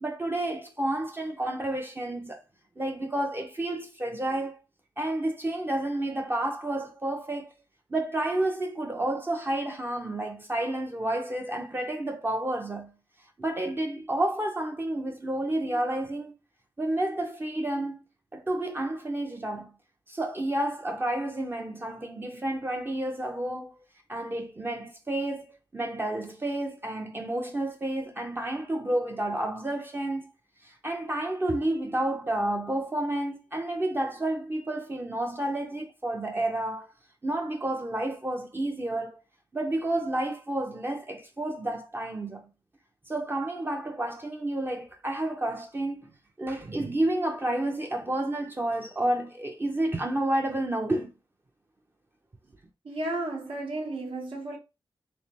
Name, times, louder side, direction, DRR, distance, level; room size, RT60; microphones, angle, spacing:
voice 1, 0.0-2.4 2.8-4.6 5.0-7.5 7.9-12.9 13.4-16.3 16.8-17.9 18.3-19.7 20.1-23.7 24.1-25.5 25.7-30.3 30.6-36.9 37.2-39.2 39.5-42.5 43.1-46.1 46.4-51.1, right 1 dB, 25° right, 0.5 m, -30 dB
voice 2, 52.8-54.6, right 2 dB, 80° right, 1.1 m, -33 dB
3.6 x 3.2 x 2.8 m
wide cardioid pair, 155°, 9 cm